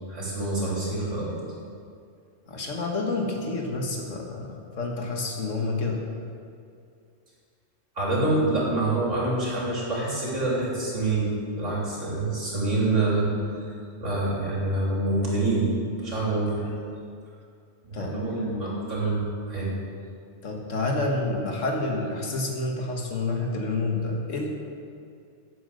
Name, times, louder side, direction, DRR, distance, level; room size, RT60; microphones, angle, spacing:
voice 1, 0.1-1.3 8.0-13.7 14.0-15.7 16.0-16.7 17.8-19.7, right 2 dB, 80° right, -6 dB, 3.6 m, -26 dB
voice 2, 2.5-6.0 17.9-18.2 20.4-24.5, left 2 dB, 85° left, 1 dB, 1.7 m, -28 dB
10.0 x 8.1 x 6.4 m, 2.4 s
omnidirectional pair, 1.3 m